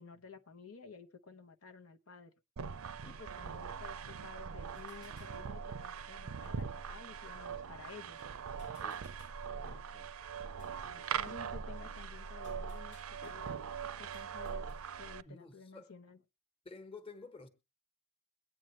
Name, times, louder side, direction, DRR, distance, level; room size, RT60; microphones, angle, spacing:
voice 1, 0.0-2.3 3.0-8.3 10.6-14.7 15.0-16.2, left 5 dB, 80° left, 0.9 m, -53 dB
sound 1, 2.6-15.2, right 6 dB, 80° right, 0.5 m, -42 dB
sound 2, 4.7-14.9, left 4 dB, 55° left, 0.7 m, -64 dB
voice 2, 8.7-9.1 9.9-10.1 13.6-13.7 15.3-15.9 16.6-17.5, left 3 dB, 25° left, 1.1 m, -52 dB
22.5 x 9.0 x 3.1 m
head